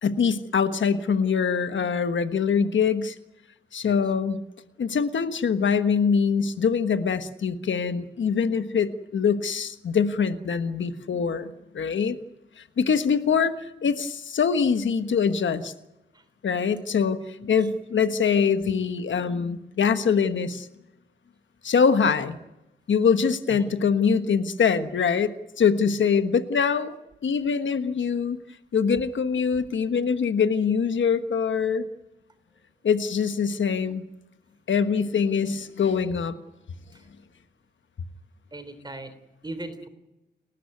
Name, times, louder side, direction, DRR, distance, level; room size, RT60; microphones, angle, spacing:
voice 1, 0.0-3.1 3.7-4.4 4.8-12.2 12.6-13.5 13.8-15.7 16.4-20.7 21.6-22.4 22.9-26.9 27.2-28.4 28.7-31.9 32.8-34.0 34.7-36.3, left 6 dB, 85° left, 10 dB, 1.3 m, -23 dB
voice 2, 38.5-39.1 39.4-39.9, right 2 dB, 20° right, 11 dB, 3.4 m, -38 dB
30.0 x 13.5 x 9.5 m, 0.97 s
wide cardioid pair, 135°, 19 cm